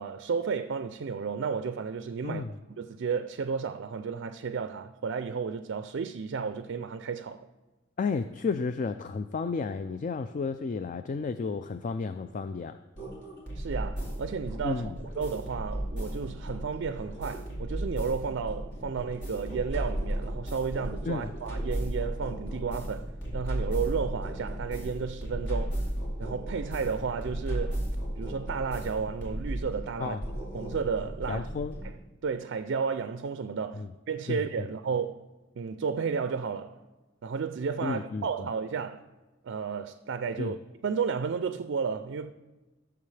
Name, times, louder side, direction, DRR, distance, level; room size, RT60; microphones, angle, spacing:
voice 1, 0.0-2.4 2.8-7.5 13.6-25.8 26.2-27.9 28.2-30.2 30.5-31.5 31.8-31.9 32.2-35.3 35.6-36.8 37.2-39.0 39.4-40.6 40.8-42.3, right 6 dB, 60° right, 0.4 m, -33 dB
voice 2, 8.0-12.8 14.6-15.0 21.1-21.3 30.0-30.3 31.3-31.8 33.8-33.9 34.3-34.7 37.8-38.5 40.4-40.5, left 4 dB, 40° left, 0.3 m, -32 dB
sound 1, 13.0-31.9, right 1 dB, 65° left, 2.8 m, -34 dB
18.0 x 6.9 x 3.3 m
head